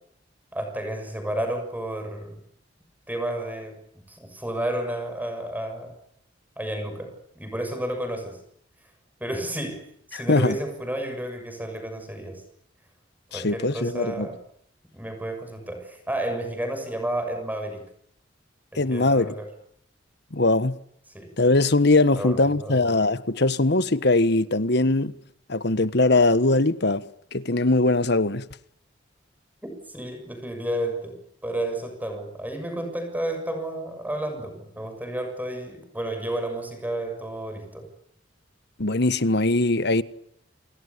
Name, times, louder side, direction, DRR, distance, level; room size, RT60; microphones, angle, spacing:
voice 1, 0.5-2.4 3.1-3.8 4.1-5.9 6.6-8.4 9.2-12.4 13.3-14.4 14.9-17.8 18.7-19.5 21.1-21.3 22.1-23.1 29.6-37.9, right 1 dB, 10° right, 6.7 m, -31 dB
voice 2, 10.1-10.6 13.3-14.3 18.8-19.3 20.3-20.8 21.4-25.1 25.5-27.0 27.3-28.4 38.8-40.0, left 2 dB, 60° left, 1.4 m, -21 dB
29.0 x 28.0 x 7.0 m
head